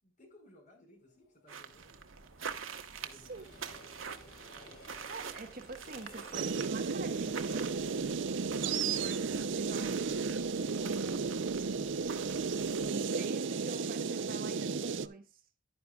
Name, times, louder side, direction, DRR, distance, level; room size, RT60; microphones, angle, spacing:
voice 1, 0.0-2.0 3.0-3.6, left 1 dB, 40° left, 5.1 m, -60 dB
Train, 1.1-10.2 10.5-10.6, left 1 dB, 55° left, 5.5 m, -58 dB
sound 1, 1.5-13.1, right 6 dB, 80° right, 1.2 m, -47 dB
voice 2, 3.1-3.5 5.1-7.6 8.6-10.0 10.8-11.4 12.9-15.4, right 3 dB, 45° right, 1.3 m, -46 dB
sound 2, 6.3-15.1, right 5 dB, 65° right, 0.5 m, -33 dB
11.0 x 10.5 x 2.3 m
head